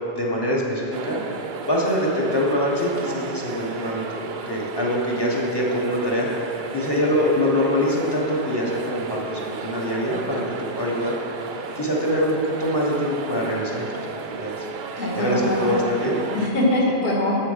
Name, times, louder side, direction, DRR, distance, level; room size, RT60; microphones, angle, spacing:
voice 1, 0.1-1.2 1.7-6.3 6.7-11.2 11.7-14.7 15.1-16.2, equal, 25° left, -4 dB, 1.2 m, -24 dB
sound 1, 0.9-16.5, right 5 dB, 75° right, 0.8 m, -35 dB
voice 2, 15.0-15.8 16.3-17.4, left 1 dB, 50° left, -5 dB, 1.7 m, -22 dB
7.1 x 7.0 x 5.6 m, 2.9 s
omnidirectional pair, 1.1 m